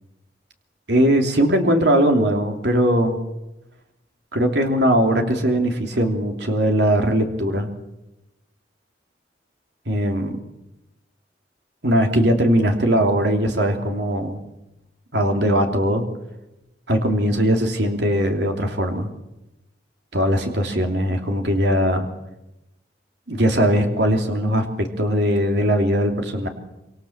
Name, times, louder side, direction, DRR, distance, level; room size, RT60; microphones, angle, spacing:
voice 1, 0.9-3.2 4.3-7.7 9.9-10.4 11.8-14.4 15.1-16.0 16.9-19.1 20.1-22.1 23.3-26.5, equal, 65° right, 3 dB, 3.1 m, -20 dB
26.5 x 25.5 x 7.4 m, 0.94 s
head